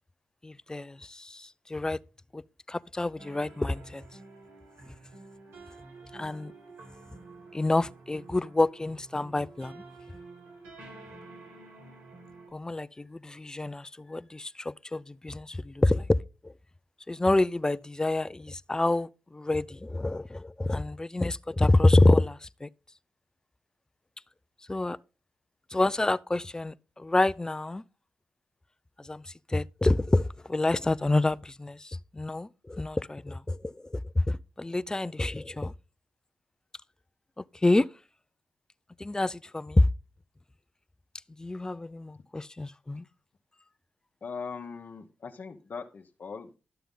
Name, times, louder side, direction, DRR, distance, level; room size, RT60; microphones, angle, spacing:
voice 1, 0.4-2.0 2.3-2.4 2.7-4.0 6.1-6.5 7.5-9.8 12.5-16.2 16.4-16.5 17.1-22.7 24.7-25.0 25.7-27.8 29.0-35.7 37.4-37.9 39.0-39.9 41.4-43.1, left 2 dB, 20° left, 0.5 m, -27 dB
sound 1, 3.2-12.5, right 3 dB, 85° right, 5.1 m, -50 dB
voice 2, 44.2-46.6, left 5 dB, 60° left, 1.0 m, -40 dB
11.5 x 6.8 x 3.7 m
supercardioid pair, 50°, 4 cm